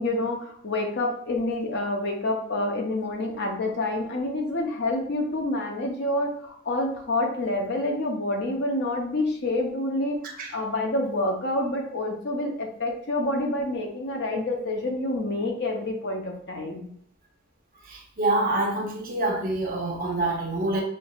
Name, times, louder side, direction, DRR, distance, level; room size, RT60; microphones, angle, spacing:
voice 1, 0.0-10.2 10.5-16.9, left 2 dB, 50° left, 2 dB, 0.7 m, -28 dB
voice 2, 17.9-20.8, right 2 dB, 40° right, 0 dB, 0.8 m, -26 dB
5.2 x 3.0 x 2.3 m, 0.64 s
head